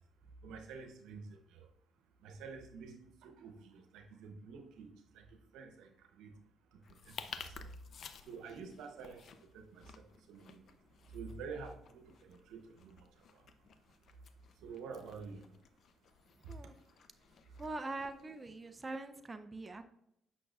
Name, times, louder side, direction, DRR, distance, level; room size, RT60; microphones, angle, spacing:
voice 1, 0.4-1.7 2.2-4.9 5.1-5.2 5.5-6.3 6.7-7.7 8.3-9.3 9.5-9.8 10.3-10.6 11.1-13.1 13.3-13.4 14.6-15.5, right 5 dB, 90° right, 6 dB, 0.9 m, -49 dB
sound 1, 6.8-19.0, left 6 dB, 60° left, 0.6 m, -54 dB
voice 2, 17.6-19.9, right 2 dB, 25° right, 8 dB, 0.5 m, -43 dB
8.6 x 5.9 x 2.4 m, 0.76 s
cardioid pair, 90°, 0 cm